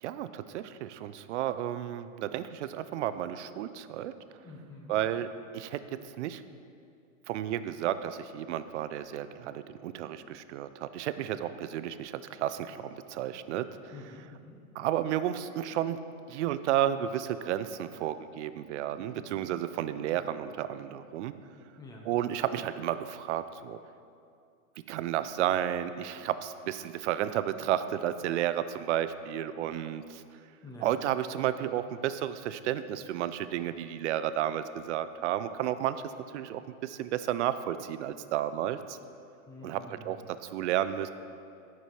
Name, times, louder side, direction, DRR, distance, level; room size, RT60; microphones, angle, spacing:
voice 1, 0.0-4.1 4.9-5.3 5.5-6.4 7.3-13.8 14.8-16.0 16.3-21.3 22.1-23.8 24.9-30.2 30.8-36.0 36.3-39.0 39.6-41.1, right 11 dB, 60° right, 12 dB, 0.5 m, -32 dB
voice 2, 4.4-5.0 13.9-14.6 21.8-22.1 30.6-30.9 39.5-40.1, left 2 dB, 10° left, -1 dB, 0.8 m, -47 dB
10.0 x 6.1 x 4.5 m, 2.5 s
supercardioid pair, 160°, 41 cm